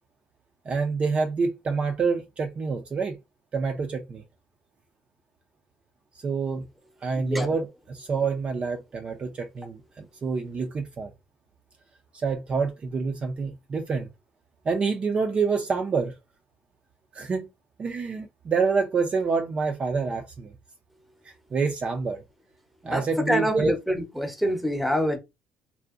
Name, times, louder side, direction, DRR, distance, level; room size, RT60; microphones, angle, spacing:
voice 1, 0.7-3.2 3.5-4.2 6.2-6.6 7.0-11.1 12.1-14.1 14.7-16.1 17.1-17.5 17.8-20.5 21.2-22.2 22.8-23.7, right 4 dB, 35° right, 0.4 m, -27 dB
voice 2, 7.1-7.5 22.9-25.2, equal, ahead, 0.7 m, -26 dB
2.5 x 2.0 x 2.4 m
supercardioid pair, 85°, 3 cm